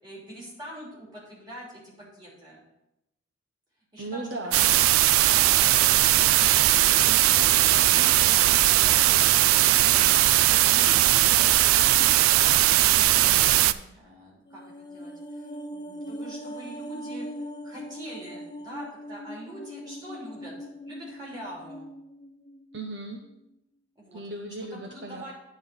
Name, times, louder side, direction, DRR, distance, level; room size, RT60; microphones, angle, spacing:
voice 1, 0.0-2.6 3.9-4.3 4.7-4.8 5.2-12.0 12.8-20.6 20.9-21.9 23.9-24.2 24.7-25.3, right 1 dB, 20° right, -5 dB, 3.0 m, -44 dB
voice 2, 4.0-4.7 22.7-23.2 24.1-25.3, right 2 dB, 55° right, 2 dB, 0.7 m, -36 dB
sound 1, 4.5-13.7, right 14 dB, 90° right, 0.3 m, -19 dB
sound 2, 14.5-22.9 23.2-23.3, equal, 20° left, 0.5 m, -40 dB
9.1 x 4.0 x 6.8 m, 0.88 s
head